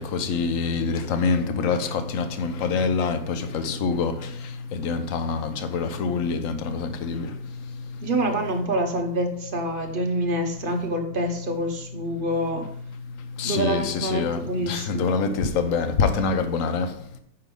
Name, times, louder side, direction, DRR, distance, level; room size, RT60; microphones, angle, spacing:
voice 1, 0.0-4.1 4.7-7.3 13.4-14.4 14.7-16.9, left 5 dB, 55° left, 8 dB, 1.1 m, -25 dB
voice 2, 8.0-12.7 13.4-15.1, right 1 dB, 35° right, 3 dB, 0.9 m, -26 dB
8.7 x 5.8 x 3.8 m, 0.68 s
omnidirectional pair, 2.0 m